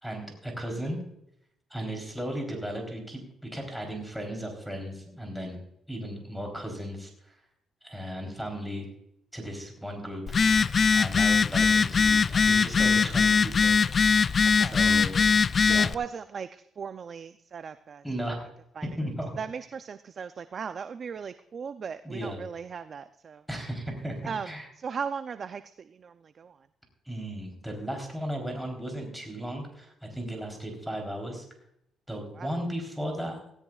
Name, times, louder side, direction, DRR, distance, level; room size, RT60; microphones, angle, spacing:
voice 1, 0.0-1.0 1.7-5.6 5.9-7.4 7.8-8.9 9.3-10.2 10.9-13.8 14.5-15.3 15.6-15.9 18.0-18.4 19.0-19.3 22.0-22.4 23.5-24.2 24.5-24.7 27.1-31.4 32.1-33.4, equal, ahead, 1 dB, 3.6 m, -35 dB
Telephone, 10.3-15.9, left 5 dB, 40° left, 0.4 m, -21 dB
voice 2, 15.6-18.0 18.8-18.9 19.4-23.4 24.2-26.7 32.1-32.5, right 6 dB, 50° right, 11 dB, 0.5 m, -38 dB
16.5 x 16.5 x 2.4 m, 0.76 s
cardioid pair, 90°, 0 cm